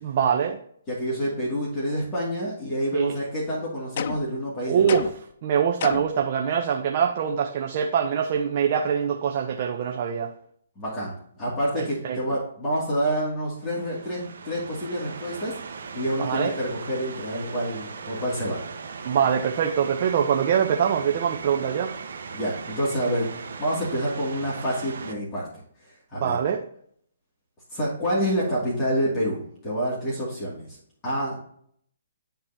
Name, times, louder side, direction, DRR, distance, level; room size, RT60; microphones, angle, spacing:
voice 1, 0.0-0.6 2.9-3.1 4.7-5.1 5.4-10.3 11.8-12.4 16.2-16.5 19.0-21.9 26.2-26.6, right 8 dB, 45° right, 2 dB, 0.7 m, -24 dB
voice 2, 0.9-5.0 10.8-18.6 22.3-23.3 23.6-26.4 27.7-30.8 31.0-31.4, equal, 20° left, -7 dB, 2.3 m, -28 dB
sound 1, 4.0-4.4 4.9-5.3 5.8-6.2, left 9 dB, 50° left, 0.4 m, -32 dB
sound 2, 13.6-25.1, right 5 dB, 65° right, 1.2 m, -38 dB
11.5 x 3.8 x 2.8 m, 0.64 s
hypercardioid pair, 145°, 0 cm